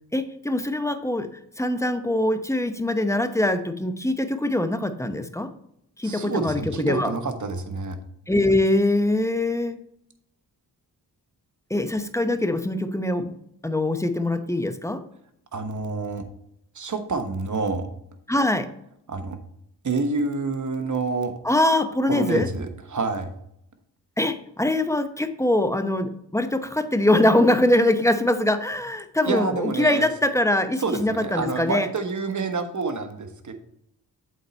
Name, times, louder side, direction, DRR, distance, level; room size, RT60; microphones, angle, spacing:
voice 1, 0.1-5.5 6.0-7.1 8.3-9.8 11.7-13.3 13.6-15.0 18.3-18.7 21.4-22.5 24.2-31.9, left 1 dB, 5° left, 9 dB, 0.8 m, -23 dB
voice 2, 6.0-8.0 15.5-16.3 16.7-17.9 19.1-19.4 19.8-21.4 22.1-23.3 29.2-30.1 30.8-33.5, right 4 dB, 40° right, 8 dB, 1.2 m, -28 dB
7.7 x 4.2 x 4.3 m, 0.73 s
supercardioid pair, 40°, 46 cm